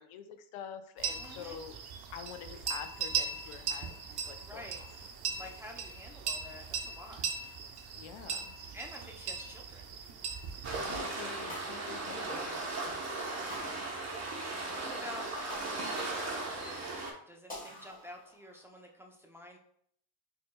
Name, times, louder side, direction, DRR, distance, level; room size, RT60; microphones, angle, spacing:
voice 1, 0.0-1.8 2.1-4.0 4.2-4.9 8.0-8.5 10.8-12.6, left 8 dB, 75° left, 9 dB, 0.6 m, -46 dB
sound 1, 1.0-11.0, right 6 dB, 50° right, 0.7 m, -39 dB
voice 2, 1.2-1.6 4.4-4.8 5.4-7.2 8.7-9.9 13.1-13.5 14.8-19.6, left 1 dB, 5° right, 0 dB, 0.6 m, -49 dB
Waves surf, 10.6-17.1, right 2 dB, 30° right, 1.0 m, -37 dB
sound 2, 11.5-12.8 13.5-14.7 15.5-16.7 17.5-18.7, equal, 15° left, 1.4 m, -48 dB
4.4 x 3.2 x 2.2 m, 0.65 s
cardioid pair, 85°, 50 cm